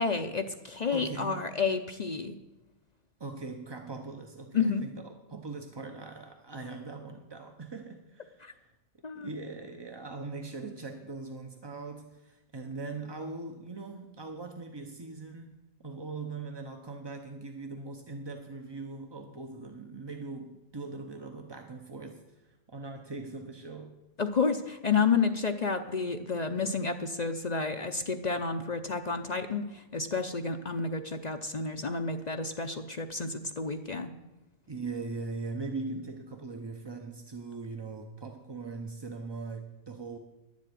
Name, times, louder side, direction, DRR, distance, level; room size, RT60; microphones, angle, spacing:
voice 1, 0.0-2.4 4.5-4.8 8.4-8.5 9.0-9.3 24.2-34.1, left 5 dB, 45° left, 6 dB, 0.5 m, -30 dB
voice 2, 0.9-1.5 3.2-8.7 9.1-24.0 34.7-40.2, right 3 dB, 25° right, 4 dB, 0.5 m, -41 dB
11.0 x 7.4 x 9.1 m, 1.0 s
omnidirectional pair, 1.6 m